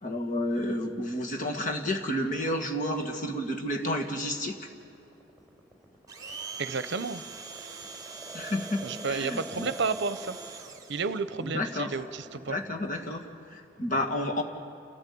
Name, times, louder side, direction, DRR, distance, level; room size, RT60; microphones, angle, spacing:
voice 1, 0.0-4.6 8.3-9.7 11.4-11.9 12.5-13.2 13.5-14.4, left 1 dB, 40° left, 2 dB, 2.1 m, -31 dB
sound 1, 3.9-12.9, right 2 dB, ahead, 4.4 m, -46 dB
Domestic sounds home sounds, 6.1-11.2, right 4 dB, 20° right, 1.5 m, -43 dB
voice 2, 6.6-7.2 8.8-10.4 10.9-12.6, right 4 dB, 60° right, 14 dB, 0.8 m, -31 dB
29.0 x 14.0 x 8.6 m, 2.8 s
head